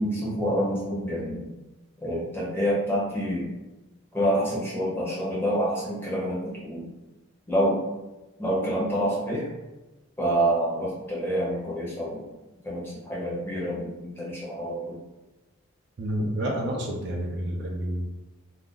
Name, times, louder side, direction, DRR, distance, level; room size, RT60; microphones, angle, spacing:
voice 1, 0.0-1.5 2.0-3.5 4.1-6.9 7.5-7.8 8.4-9.5 10.2-12.2 12.6-15.0, equal, 10° left, -7 dB, 0.7 m, -27 dB
voice 2, 16.0-18.1, equal, 55° right, 0 dB, 0.4 m, -29 dB
2.5 x 2.0 x 3.7 m, 1.1 s
head